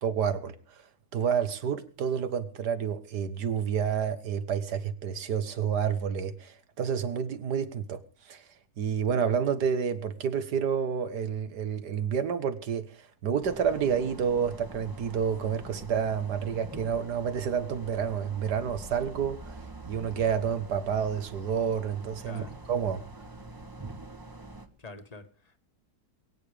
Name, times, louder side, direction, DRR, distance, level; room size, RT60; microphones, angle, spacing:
voice 1, 0.0-0.8 1.1-8.4 8.8-23.0, right 7 dB, 75° right, 1.9 m, -29 dB
sound 1, 13.4-24.7, right 2 dB, 15° right, 1.2 m, -45 dB
voice 2, 22.2-22.6 24.8-25.6, left 3 dB, 25° left, 1.6 m, -46 dB
22.5 x 9.2 x 5.0 m
omnidirectional pair, 1.8 m